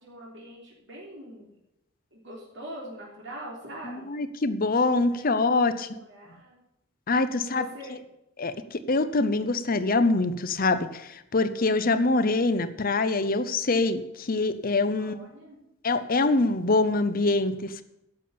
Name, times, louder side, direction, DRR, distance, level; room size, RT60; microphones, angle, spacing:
voice 1, 0.0-1.5 2.1-4.1 5.1-6.6 7.3-8.0 15.0-15.6, right 1 dB, 60° right, -3 dB, 3.4 m, -43 dB
voice 2, 3.8-5.9 7.1-7.7 8.4-15.3 15.8-17.8, left 3 dB, 45° left, 11 dB, 0.8 m, -24 dB
11.0 x 6.8 x 8.7 m, 0.86 s
head